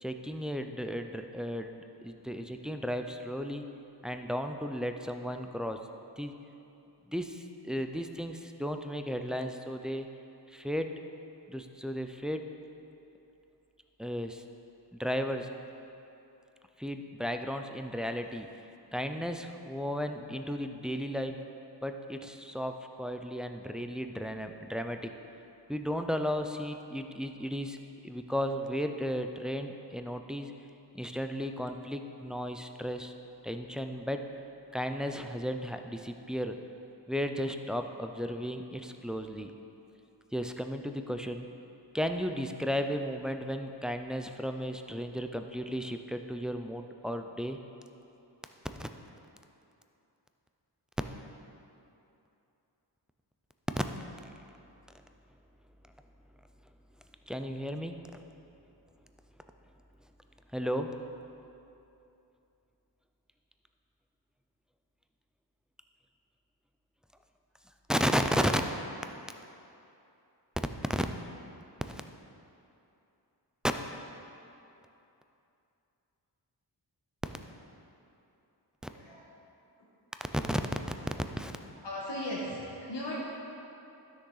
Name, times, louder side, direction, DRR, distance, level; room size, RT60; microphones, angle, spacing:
voice 1, 0.0-3.6 4.0-5.8 6.2-6.3 7.1-10.1 10.5-10.9 11.5-12.4 14.0-14.4 14.9-15.5 16.8-18.5 18.9-21.4 21.8-25.1 25.7-27.8 28.0-30.5 30.9-33.1 33.4-34.2 34.7-36.6 37.1-39.5 40.3-41.5 41.9-47.6 48.6-48.9 53.7-53.8 57.3-58.0 60.5-61.0 67.9-68.6 70.9-71.1 71.8-72.0 77.2-77.3 80.4-80.6 80.9-81.0 81.4-81.6, equal, ahead, 5 dB, 0.3 m, -34 dB
voice 2, 78.9-79.3 81.7-83.2, equal, 80° left, -7 dB, 1.5 m, -37 dB
13.0 x 6.3 x 3.9 m, 2.8 s
wide cardioid pair, 120°, 42 cm